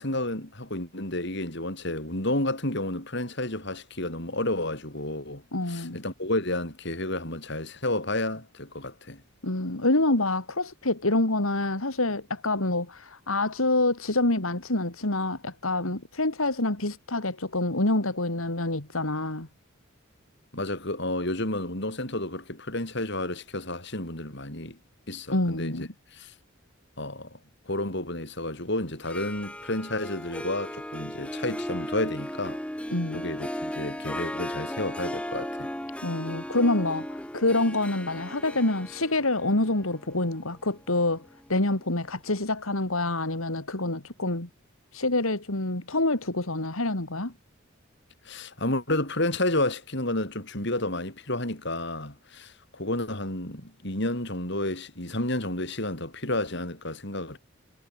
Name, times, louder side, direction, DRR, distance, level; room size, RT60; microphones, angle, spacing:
voice 1, 0.0-9.2 20.5-24.8 25.1-26.3 27.0-27.4 27.7-32.6 33.1-35.7 48.2-57.4, left 1 dB, 55° left, 6.1 m, -31 dB
voice 2, 5.5-6.0 9.4-19.5 25.3-25.9 32.9-33.3 36.0-44.5 44.9-47.3, left 2 dB, 80° left, 3.2 m, -27 dB
Harp, 29.1-41.8, equal, 5° left, 3.1 m, -36 dB
head